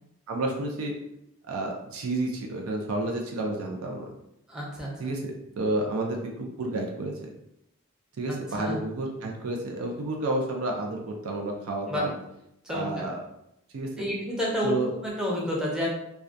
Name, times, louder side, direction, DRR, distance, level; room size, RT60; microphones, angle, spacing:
voice 1, 0.3-0.9 1.5-4.0 5.0-7.3 8.2-12.1 12.7-13.2 13.7-13.9 14.6-14.9, right 2 dB, 70° right, 1 dB, 0.4 m, -30 dB
voice 2, 4.5-5.1 8.3-8.8 11.9-12.1 12.6-13.1 14.0-14.8 15.0-15.9, equal, 5° right, -4 dB, 0.5 m, -30 dB
2.3 x 2.1 x 2.5 m, 0.81 s
head